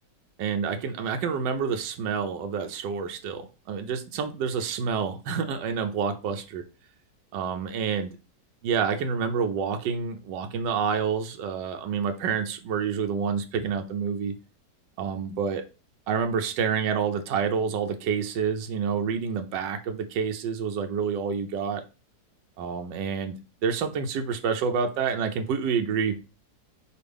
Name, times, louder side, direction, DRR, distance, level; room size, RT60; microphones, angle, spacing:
voice 1, 0.4-6.6 7.3-8.1 8.6-14.4 15.0-15.6 16.1-21.8 22.6-23.3 23.6-26.2, right 6 dB, 85° right, 6 dB, 1.3 m, -28 dB
5.3 x 2.5 x 3.3 m, 0.31 s
omnidirectional pair, 1.9 m